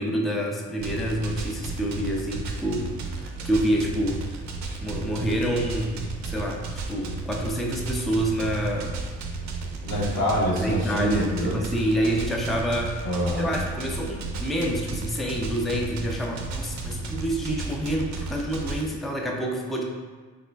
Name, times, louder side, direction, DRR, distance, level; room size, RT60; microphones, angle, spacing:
voice 1, 0.0-4.3 4.8-9.0 10.5-13.1 13.4-19.8, equal, ahead, 0 dB, 0.4 m, -27 dB
sound 1, 0.8-18.8, right 3 dB, 65° right, 0.5 m, -34 dB
voice 2, 9.8-11.6 13.0-13.5, equal, 85° left, -5 dB, 1.1 m, -25 dB
3.9 x 2.1 x 3.3 m, 1.4 s
cardioid pair, 90°, 30 cm